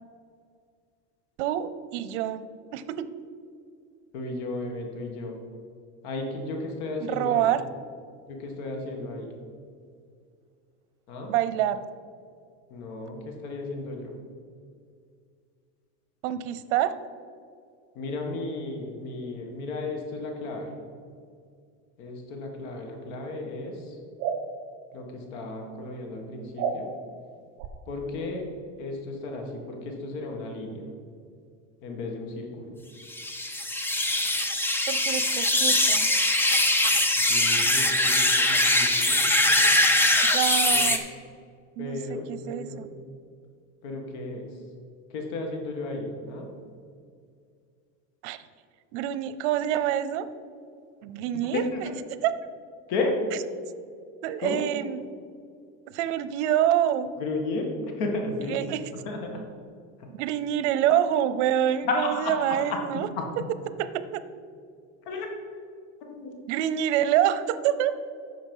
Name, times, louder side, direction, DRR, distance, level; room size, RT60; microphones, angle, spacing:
voice 1, 1.4-2.4 2.7-3.1 7.0-7.6 11.3-11.8 16.2-17.0 34.9-36.1 36.8-36.9 40.2-41.0 41.8-42.9 48.2-48.4 48.9-50.3 51.0-51.6 52.2-52.5 54.2-55.0 55.9-57.1 58.5-58.8 60.1-63.1 63.9-64.2 66.5-67.9, right 11 dB, 80° right, 14 dB, 0.7 m, -26 dB
voice 2, 4.1-5.4 6.0-7.5 8.2-9.4 11.1-11.3 12.7-14.2 18.0-20.8 22.0-24.0 24.9-26.9 27.9-28.5 28.8-30.9 31.8-32.8 37.3-39.8 40.7-40.9 41.8-42.9 43.8-44.6 45.1-46.5 51.5-51.9 52.9-53.2 54.4-54.6 57.2-58.6 58.9-59.5 60.0-60.1 61.8-63.5 65.0-65.3 66.0-66.3, left 2 dB, 70° left, 2 dB, 2.0 m, -34 dB
sound 1, 24.2-24.4 26.6-26.8 27.6-27.7, right 7 dB, 50° right, 1.1 m, -29 dB
sound 2, 33.1-41.0, left 1 dB, 5° left, 0.5 m, -22 dB
9.6 x 6.5 x 5.5 m, 2.2 s
cardioid pair, 155°, 34 cm